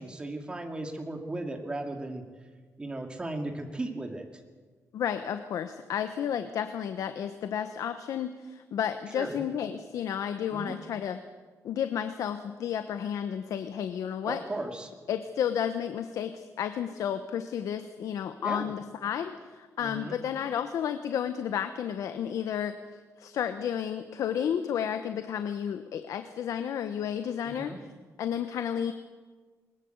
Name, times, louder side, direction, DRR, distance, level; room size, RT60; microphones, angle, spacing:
voice 1, 0.0-2.2 2.8-4.2 9.1-9.3 10.5-10.8 14.2-14.9 18.4-18.7 19.8-20.2 27.6-27.8, right 2 dB, 15° right, 4 dB, 2.5 m, -36 dB
voice 2, 4.9-11.2 11.6-14.4 15.1-22.8 23.2-27.9 28.2-28.9, left 9 dB, 70° left, 9 dB, 1.1 m, -32 dB
21.0 x 20.5 x 8.0 m, 1.4 s
wide cardioid pair, 160°, 6 cm